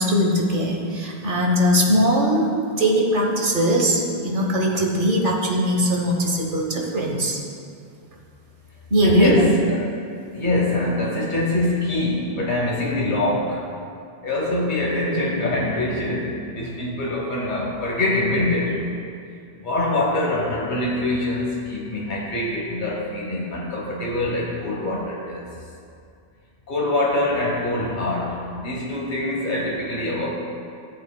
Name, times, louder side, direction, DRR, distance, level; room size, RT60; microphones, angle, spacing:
voice 1, 0.0-7.4 8.9-9.3, equal, 55° right, 0 dB, 1.3 m, -20 dB
voice 2, 9.0-9.9 10.3-13.7 14.2-18.9 19.6-25.4 26.7-30.3, left 2 dB, 50° left, -3 dB, 1.3 m, -24 dB
13.5 x 7.2 x 2.2 m, 2.4 s
omnidirectional pair, 1.1 m